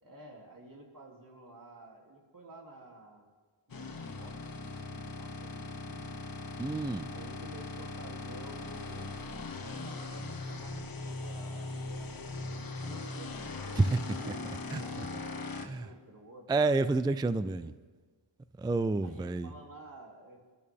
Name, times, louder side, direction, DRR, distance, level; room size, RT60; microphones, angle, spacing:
voice 1, 0.0-3.3 3.7-6.2 7.1-9.2 9.5-13.3 13.7-16.5 19.0-20.6, right 2 dB, 45° right, 0 dB, 3.0 m, -52 dB
sound 1, 3.7-15.7, left 3 dB, 45° left, 1.4 m, -40 dB
voice 2, 6.6-7.1 13.8-14.0 14.7-14.8 15.7-15.9 16.5-17.7 18.6-19.5, right 3 dB, 10° right, 14 dB, 0.3 m, -28 dB
25.0 x 12.5 x 3.6 m, 1.4 s
wide cardioid pair, 95°, 48 cm